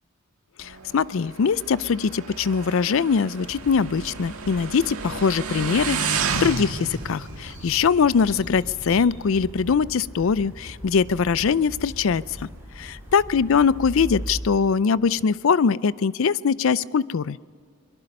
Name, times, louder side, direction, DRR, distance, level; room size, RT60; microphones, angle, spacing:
voice 1, 0.6-12.5 12.8-17.4, left 6 dB, 60° left, 19 dB, 0.4 m, -22 dB
Motorcycle, 0.6-8.9, right 5 dB, 75° right, 1.7 m, -32 dB
sound 1, 3.4-14.4, equal, 10° right, 5.6 m, -40 dB
23.0 x 21.5 x 5.4 m, 2.2 s
head